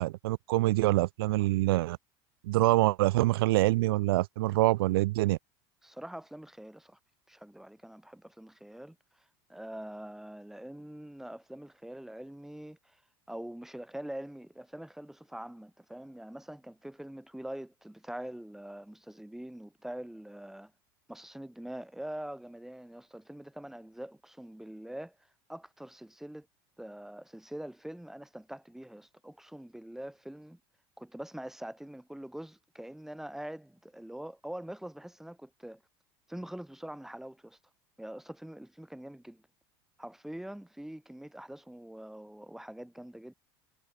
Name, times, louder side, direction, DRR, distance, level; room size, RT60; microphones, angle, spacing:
voice 1, 0.0-2.0 2.4-5.4, right 18 dB, 85° right, 1.8 m, -25 dB
voice 2, 5.8-7.0 7.3-13.0 13.3-20.7 21.1-25.2 25.5-26.5 26.8-30.6 31.0-35.8 36.3-37.6 38.0-39.4 40.0-43.3, right 1 dB, 5° right, 5.0 m, -44 dB
supercardioid pair, 100°, 12 cm